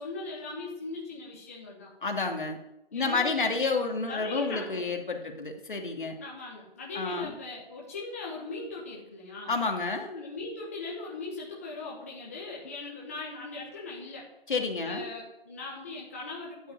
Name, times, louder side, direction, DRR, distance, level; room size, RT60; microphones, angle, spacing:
voice 1, 0.0-1.9 2.9-3.5 4.0-4.8 6.2-9.5 10.2-14.3 14.7-16.7, left 3 dB, 15° left, -4 dB, 1.2 m, -39 dB
voice 2, 2.0-2.6 2.9-6.2 6.9-7.3 9.5-10.2 14.5-15.1, left 4 dB, 55° left, 3 dB, 2.6 m, -30 dB
11.5 x 7.9 x 8.9 m, 0.88 s
hypercardioid pair, 175°, 30 cm